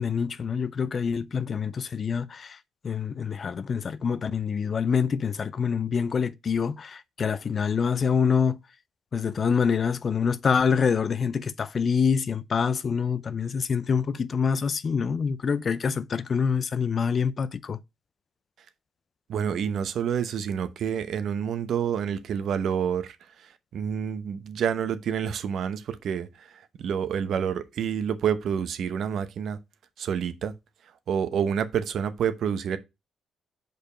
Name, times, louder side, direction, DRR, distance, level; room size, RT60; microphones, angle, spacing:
voice 1, 0.0-2.6 2.8-8.6 9.1-17.8, left 6 dB, 45° left, 0.5 m, -26 dB
voice 2, 19.3-29.6 30.0-30.5 31.1-32.8, right 8 dB, 65° right, 0.8 m, -28 dB
5.2 x 4.6 x 4.9 m
cardioid pair, 90°, 0 cm